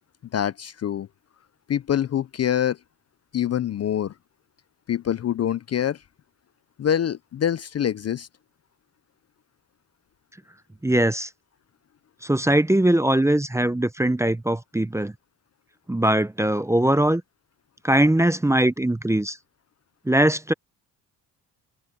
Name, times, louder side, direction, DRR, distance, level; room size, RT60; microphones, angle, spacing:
voice 1, 0.3-1.1 1.7-2.8 3.3-4.1 4.9-6.0 6.8-8.3, left 10 dB, 40° left, 0.5 m, -25 dB
voice 2, 10.8-11.3 12.2-15.1 15.9-17.2 17.8-19.4 20.1-20.5, right 1 dB, 5° right, 0.6 m, -21 dB
cardioid pair, 95°, 42 cm